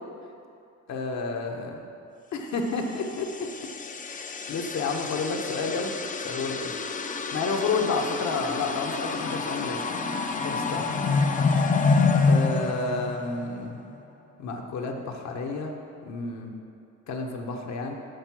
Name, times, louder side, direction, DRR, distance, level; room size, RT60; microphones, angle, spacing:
voice 1, 0.9-1.7 2.3-3.5 4.1-6.0 6.2-6.7 7.3-9.8 10.4-10.9 12.3-13.8 14.4-15.7 16.0-16.5 17.1-17.9, left 3 dB, 65° left, 2 dB, 1.0 m, -30 dB
sound 1, 3.1-13.7, left 4 dB, 25° left, 0.5 m, -27 dB
6.5 x 5.4 x 6.0 m, 2.6 s
cardioid pair, 90°, 30 cm